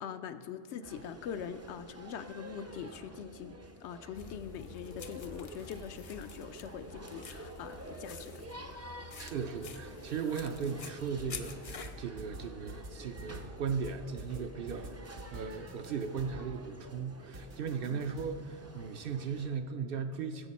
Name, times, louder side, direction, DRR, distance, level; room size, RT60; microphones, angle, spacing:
voice 1, 0.0-3.6 3.8-8.4 17.9-18.0, left 8 dB, 75° left, 10 dB, 0.8 m, -43 dB
sound 1, 0.8-19.6, right 1 dB, 20° right, 0.4 m, -50 dB
sound 2, 4.1-11.9, left 5 dB, 45° left, 0.4 m, -48 dB
voice 2, 9.2-20.5, right 6 dB, 60° right, 7 dB, 0.7 m, -37 dB
sound 3, 10.5-10.9 11.2-16.5 17.3-18.3, equal, 75° right, 1.6 m, -47 dB
14.5 x 8.1 x 4.1 m, 2.1 s
omnidirectional pair, 1.2 m